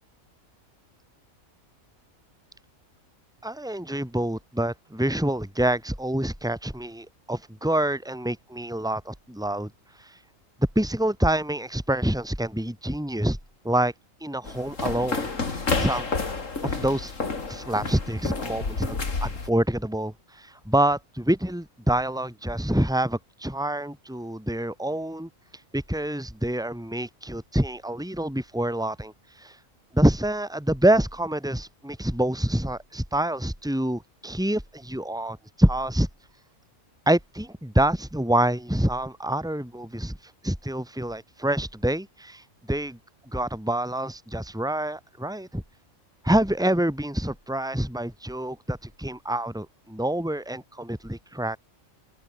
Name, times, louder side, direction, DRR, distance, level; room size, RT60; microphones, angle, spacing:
voice 1, 3.4-9.7 10.8-13.4 13.6-13.9 14.2-16.1 16.6-17.1 17.5-25.3 25.7-29.1 29.4-29.5 29.9-36.1 37.1-40.2 40.4-42.4 42.7-43.0 43.3-45.6 46.2-51.6, right 1 dB, 5° right, 3.7 m, -26 dB
sound 1, 14.5-19.5, left 4 dB, 70° left, 3.2 m, -30 dB
open air
omnidirectional pair, 1.4 m